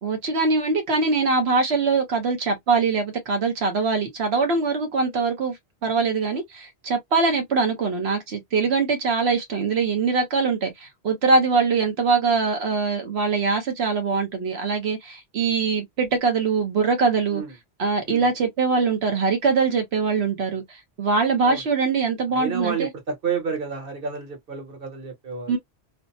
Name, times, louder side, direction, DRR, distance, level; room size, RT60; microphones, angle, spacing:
voice 1, 0.0-5.6 5.8-17.4 17.8-22.9 25.5-25.6, right 4 dB, 80° right, 1.2 m, -23 dB
voice 2, 22.3-25.6, right 5 dB, 60° right, 1.2 m, -30 dB
3.2 x 2.0 x 2.7 m
omnidirectional pair, 1.1 m